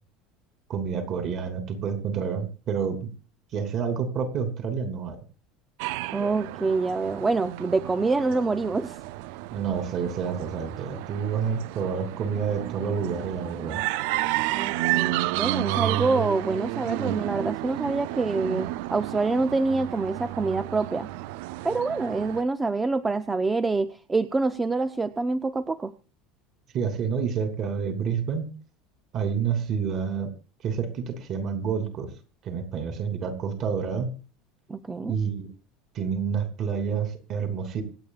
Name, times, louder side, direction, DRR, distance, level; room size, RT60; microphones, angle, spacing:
voice 1, 0.7-3.1 3.5-5.2 9.5-13.8 26.7-28.5 29.1-30.3 30.6-32.1 32.4-34.1 35.1-35.5 35.9-37.8, right 6 dB, 35° right, 8 dB, 3.1 m, -28 dB
sound 1, 5.8-22.4, right 17 dB, 65° right, 0.5 m, -31 dB
voice 2, 6.1-9.0 14.5-21.1 21.6-25.9 34.7-35.1, right 3 dB, 10° right, 12 dB, 0.6 m, -26 dB
26.0 x 8.8 x 2.4 m, 0.34 s
cardioid pair, 165°, 0 cm